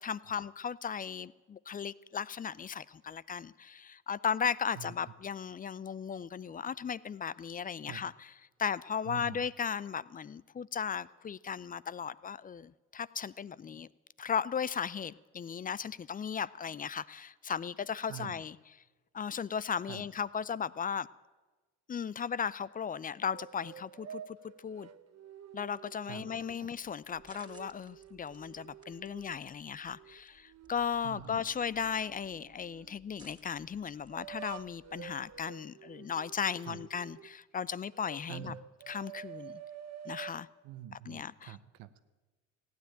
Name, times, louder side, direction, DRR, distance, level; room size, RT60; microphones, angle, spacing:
voice 1, 0.0-8.3 8.6-13.9 14.2-18.6 19.1-21.1 21.9-24.4 24.6-24.9 25.5-38.5 38.9-39.6 40.1-40.5 40.9-41.6, left 7 dB, 25° left, 20 dB, 0.4 m, -36 dB
voice 2, 9.0-9.4 18.1-18.4 19.9-20.0 26.0-26.3 26.6-26.7 31.0-31.4 36.7-36.8 38.3-38.6 40.6-42.0, right 12 dB, 75° right, 12 dB, 1.0 m, -45 dB
sound 1, 23.3-26.6 27.1-29.4 29.9-33.0 34.1-37.4 37.9-40.4, right 9 dB, 45° right, 0.9 m, -50 dB
sound 2, 26.8-35.5, right 2 dB, 10° right, 2.8 m, -62 dB
15.5 x 9.4 x 9.0 m, 1.3 s
supercardioid pair, 65°, 35 cm